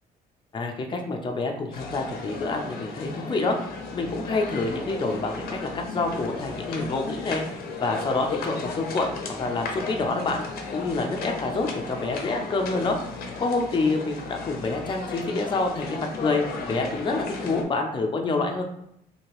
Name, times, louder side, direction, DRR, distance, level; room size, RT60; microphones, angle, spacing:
voice 1, 0.5-3.6 3.9-7.4 7.8-9.1 9.4-10.4 10.7-13.0 13.4-18.6, left 3 dB, 30° left, 2 dB, 0.6 m, -27 dB
sound 1, 1.7-17.6, left 4 dB, 75° left, 0.6 m, -35 dB
2.8 x 2.8 x 3.0 m, 0.75 s
cardioid pair, 90°, 16 cm